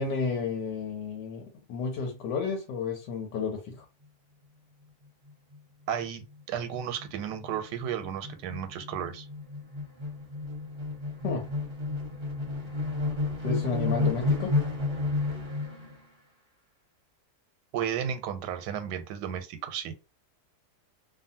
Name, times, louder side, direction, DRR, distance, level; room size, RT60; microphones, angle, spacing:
voice 1, 0.0-3.8 11.2-11.5 13.4-14.5, left 5 dB, 90° left, 1.3 m, -32 dB
sound 1, 5.3-5.6 5.9-6.1 6.3-16.0, left 3 dB, 40° right, 0.9 m, -31 dB
voice 2, 5.9-9.3 17.7-19.9, right 9 dB, 90° right, 1.2 m, -33 dB
2.7 x 2.5 x 2.7 m
omnidirectional pair, 1.8 m